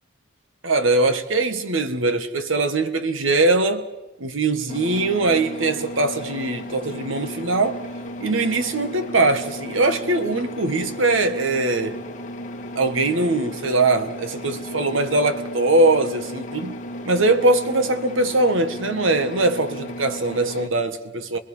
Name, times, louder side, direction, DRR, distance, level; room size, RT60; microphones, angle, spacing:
voice 1, 0.6-3.8 4.2-7.8 8.2-12.0 12.7-16.8 17.0-21.4, right 2 dB, 80° right, 1.6 m, -21 dB
sound 1, 4.7-20.7, left 1 dB, 40° left, 1.7 m, -35 dB
28.0 x 21.0 x 5.6 m
head